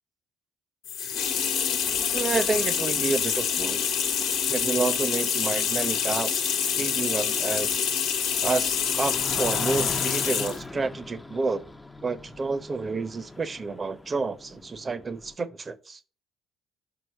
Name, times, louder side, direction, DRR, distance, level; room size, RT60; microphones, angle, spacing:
sound 1, 0.8-10.6, left 7 dB, 75° left, 1.2 m, -26 dB
voice 1, 2.1-3.8 4.5-7.9 8.4-11.7 12.0-16.0, right 4 dB, 35° right, 0.9 m, -29 dB
sound 2, 4.7-15.3, left 2 dB, 10° left, 0.7 m, -40 dB
6.0 x 4.7 x 5.8 m
supercardioid pair, 65°, 0 cm